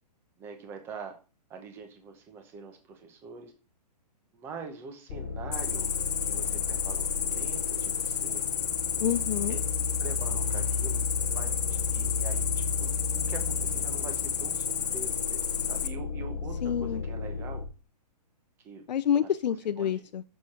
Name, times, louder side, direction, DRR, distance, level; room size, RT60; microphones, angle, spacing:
voice 1, 0.4-1.2 1.5-3.5 4.3-5.9 6.2-8.4 9.4-9.6 10.0-11.0 11.3-17.6 18.6-18.8 19.2-19.3 19.8-20.1, right 5 dB, 10° right, 5 dB, 0.9 m, -44 dB
sound 1, 5.1-17.7, left 4 dB, 40° left, 0.9 m, -34 dB
Cricket, 5.5-15.9, left 8 dB, 65° left, 1.1 m, -31 dB
voice 2, 9.0-9.6 16.6-17.0 18.9-20.2, left 9 dB, 85° left, 11 dB, 0.5 m, -28 dB
8.3 x 6.8 x 4.3 m, 0.34 s
hypercardioid pair, 170°, 21 cm